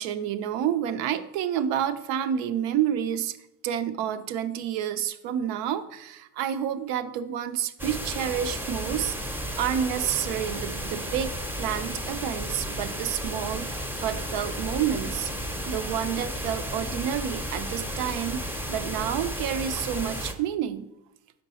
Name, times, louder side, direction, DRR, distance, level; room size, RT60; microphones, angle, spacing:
voice 1, 0.0-3.4 3.6-9.1 9.5-11.3 11.6-15.3 15.7-20.9, right 9 dB, 75° right, 12 dB, 0.6 m, -29 dB
sound 1, 7.8-20.3, equal, 5° right, 0.6 m, -33 dB
5.3 x 4.5 x 4.1 m, 0.87 s
supercardioid pair, 80°, 46 cm